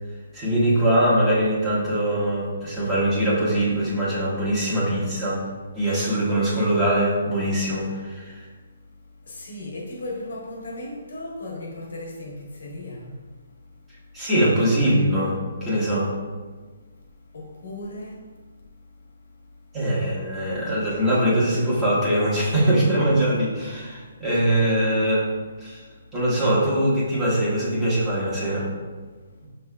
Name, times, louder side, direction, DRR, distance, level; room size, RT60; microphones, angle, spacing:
voice 1, 0.3-5.4 5.7-8.4 14.1-16.1 19.7-25.3 25.6-25.8 26.1-28.7, right 1 dB, 15° right, 1.3 m, -22 dB
voice 2, 9.3-12.3 12.6-13.1 17.3-18.2, left 1 dB, 75° left, 1.2 m, -35 dB
6.3 x 3.3 x 2.3 m
hypercardioid pair, 150°, 0 cm